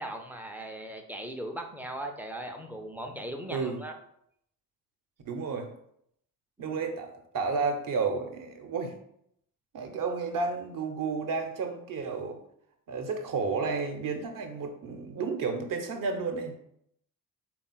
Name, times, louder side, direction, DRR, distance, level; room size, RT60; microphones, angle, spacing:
voice 1, 0.0-3.9 6.6-6.8, right 1 dB, 5° right, 3 dB, 0.5 m, -38 dB
voice 2, 3.5-3.8 5.2-5.7 6.6-8.9 9.7-12.4 12.9-16.5, right 4 dB, 45° right, 5 dB, 0.8 m, -32 dB
3.5 x 2.4 x 4.0 m, 0.71 s
figure-of-eight pair, 40°, 47 cm